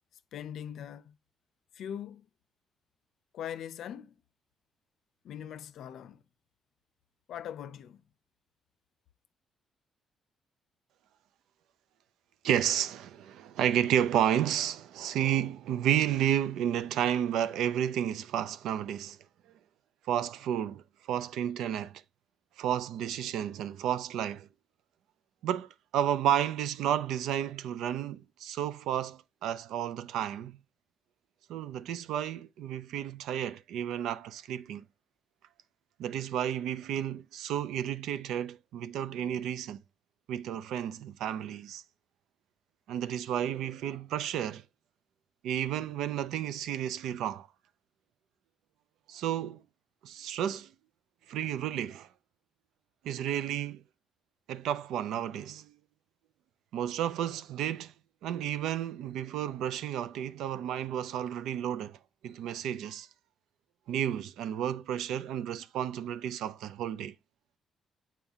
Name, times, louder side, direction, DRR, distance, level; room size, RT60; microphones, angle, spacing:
voice 1, 0.3-1.1 1.7-2.3 3.3-4.2 5.2-6.2 7.3-8.0, left 9 dB, 75° left, 0.5 m, -41 dB
voice 2, 12.4-19.2 20.1-22.0 22.6-24.5 25.4-30.6 31.5-34.8 36.0-39.8 40.3-41.8 42.9-44.6 45.4-47.5 49.1-49.6 50.0-50.7 51.3-52.1 53.0-53.8 54.5-55.7 56.7-57.9 58.2-62.0 62.2-63.1 63.9-67.1, right 10 dB, 85° right, 0.4 m, -32 dB
7.2 x 4.4 x 3.5 m
cardioid pair, 90°, 0 cm